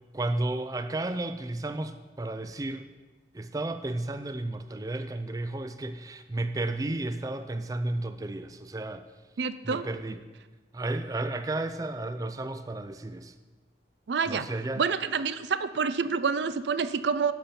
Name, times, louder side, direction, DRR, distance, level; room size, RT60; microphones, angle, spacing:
voice 1, 0.1-2.9 3.3-9.0 9.6-10.2 10.7-13.3 14.3-14.8, right 2 dB, 20° right, 10 dB, 0.4 m, -33 dB
voice 2, 9.4-9.9 14.1-14.5 14.8-17.3, right 5 dB, 75° right, 13 dB, 0.5 m, -28 dB
10.5 x 7.0 x 5.8 m, 1.3 s
head